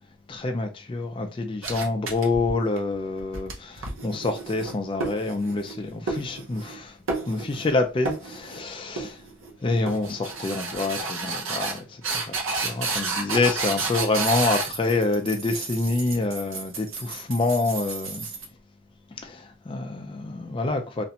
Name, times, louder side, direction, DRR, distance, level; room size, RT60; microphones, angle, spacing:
voice 1, 0.3-7.0 7.3-9.2 9.6-18.3 19.2-21.0, left 3 dB, 25° left, 0.3 m, -27 dB
sound 1, 1.6-2.8 3.2-5.8 6.1-6.8 7.1-7.7 8.0-8.6 9.0-9.5 9.9-18.4, right 3 dB, 65° right, 0.6 m, -31 dB
2.4 x 2.1 x 2.8 m
head